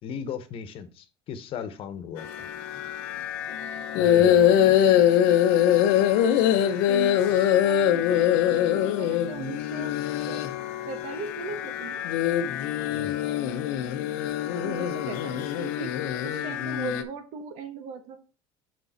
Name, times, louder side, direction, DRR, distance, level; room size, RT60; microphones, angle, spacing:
voice 1, 0.0-2.3 3.9-4.8 12.9-13.1, left 7 dB, 50° left, 1.1 m, -36 dB
sound 1, 2.2-17.0, left 10 dB, 80° left, 0.8 m, -23 dB
voice 2, 4.3-5.0 6.9-9.9 10.3-10.5 10.9-12.0 14.6-15.9 16.2-18.2, right 6 dB, 70° right, 1.3 m, -39 dB
5.6 x 5.3 x 4.3 m
supercardioid pair, 105°, 11 cm